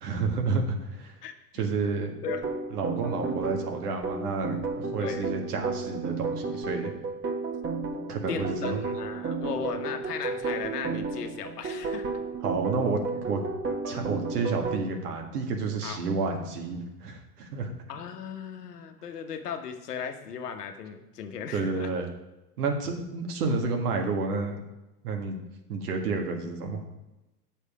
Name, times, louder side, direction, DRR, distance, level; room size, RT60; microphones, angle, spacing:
voice 1, 0.0-1.1 1.5-2.1 2.7-6.9 8.1-8.8 12.4-13.4 13.9-17.7 21.5-22.1 22.6-24.6 25.0-25.4 25.7-26.8, right 4 dB, 70° right, 3 dB, 1.9 m, -30 dB
sound 1, 2.3-14.8, right 4 dB, 25° right, 1.3 m, -33 dB
voice 2, 5.0-5.3 8.3-12.0 15.8-16.0 17.9-21.9, left 7 dB, 75° left, 6 dB, 1.2 m, -36 dB
8.2 x 6.6 x 4.9 m, 1.0 s
hypercardioid pair, 85°, 47 cm